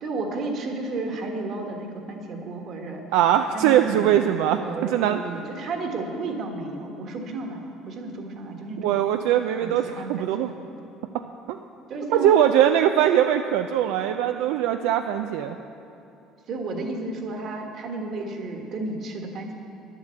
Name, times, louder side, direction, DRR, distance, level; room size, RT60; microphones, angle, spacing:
voice 1, 0.0-3.0 3.5-4.2 4.6-9.0 9.6-10.7 11.9-12.4 16.5-19.5, right 2 dB, 50° right, 3 dB, 1.5 m, -32 dB
voice 2, 3.1-5.2 8.8-9.8 10.1-10.5 11.5-11.6 12.1-15.6, right 10 dB, 85° right, 6 dB, 0.4 m, -21 dB
9.9 x 8.2 x 7.6 m, 2.7 s
cardioid pair, 110°, 0 cm